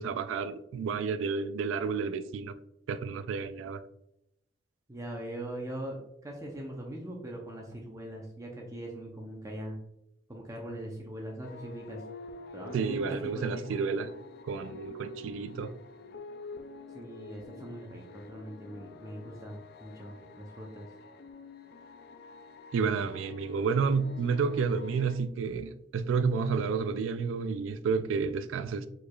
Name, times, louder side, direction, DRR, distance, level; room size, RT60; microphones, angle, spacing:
voice 1, 0.0-2.6 2.9-3.8 12.7-14.1 14.4-15.7 22.7-28.9, right 5 dB, 80° right, 0.3 m, -30 dB
voice 2, 4.9-9.8 10.3-12.0 12.5-13.9 16.9-20.9, right 1 dB, 15° right, 0.6 m, -41 dB
sound 1, 11.4-25.1, left 2 dB, 55° left, 0.4 m, -47 dB
4.6 x 4.6 x 2.3 m
head